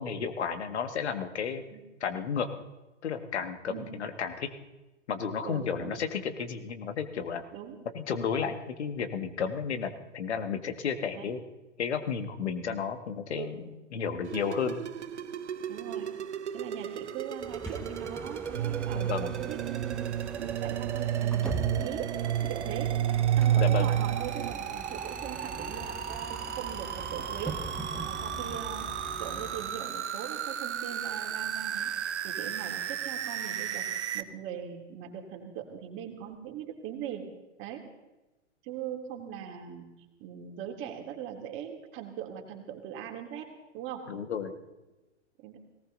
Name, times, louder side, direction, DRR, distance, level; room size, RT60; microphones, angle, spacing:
voice 1, 0.0-1.6 2.0-2.5 3.0-4.5 5.1-7.4 7.9-11.4 11.8-13.6 13.9-14.8 18.9-19.3 23.6-23.9 44.1-44.6, left 6 dB, 65° left, 8 dB, 2.0 m, -32 dB
voice 2, 5.4-6.0 7.5-7.8 11.1-11.3 13.4-13.6 15.7-16.1 16.5-22.1 22.5-23.0 23.3-28.9 29.2-31.9 32.2-33.9 34.1-37.3 37.6-37.9 38.6-39.9 40.2-44.1 45.4-45.6, right 9 dB, 35° right, 3 dB, 3.1 m, -41 dB
sound 1, 14.2-34.2, right 9 dB, 70° right, 1.1 m, -36 dB
Bus, 17.4-29.8, right 2 dB, ahead, 1.5 m, -42 dB
sound 2, 18.5-24.5, right 11 dB, 50° right, 0.5 m, -29 dB
18.5 x 18.5 x 4.0 m, 1.1 s
figure-of-eight pair, 110°, 36 cm